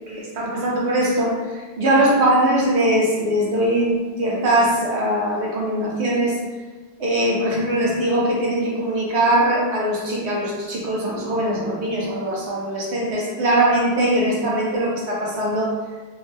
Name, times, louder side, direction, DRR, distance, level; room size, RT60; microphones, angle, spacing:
voice 1, 0.1-6.4 7.0-15.7, right 1 dB, 80° right, -4 dB, 1.0 m, -21 dB
3.0 x 2.2 x 2.6 m, 1.3 s
omnidirectional pair, 1.1 m